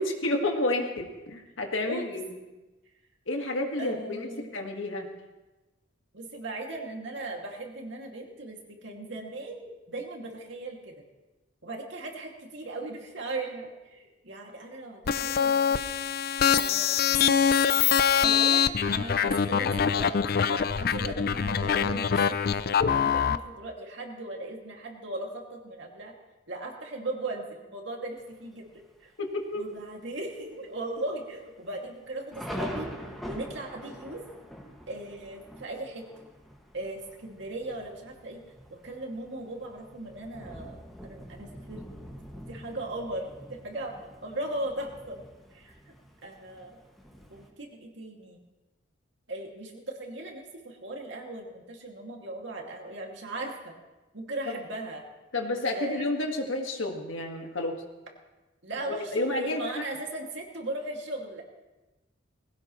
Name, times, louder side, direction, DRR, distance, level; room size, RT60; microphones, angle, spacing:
voice 1, 0.0-2.3 3.3-5.1 29.2-29.6 54.5-54.6 55.3-57.8 58.8-59.8, left 2 dB, 85° left, 3 dB, 1.9 m, -30 dB
voice 2, 3.8-4.5 6.1-10.9 11.6-15.9 16.6-17.3 18.2-20.2 20.5-26.1 26.5-28.7 29.0-29.1 29.5-32.9 33.3-34.3 34.9-36.1 36.7-38.4 38.7-41.8 42.5-45.2 45.5-45.7 46.2-46.8 47.3-48.4 49.3-53.7 54.1-55.0 55.7-56.1 58.6-61.4, right 2 dB, 65° right, 0 dB, 2.5 m, -38 dB
sound 1, 15.1-23.4, left 7 dB, 50° left, 0.4 m, -24 dB
Thunder, 28.2-28.7 29.3-29.4 29.7-30.1 30.4-30.5 31.2-47.5, equal, ahead, 1.9 m, -44 dB
20.0 x 17.0 x 3.2 m, 1.1 s
head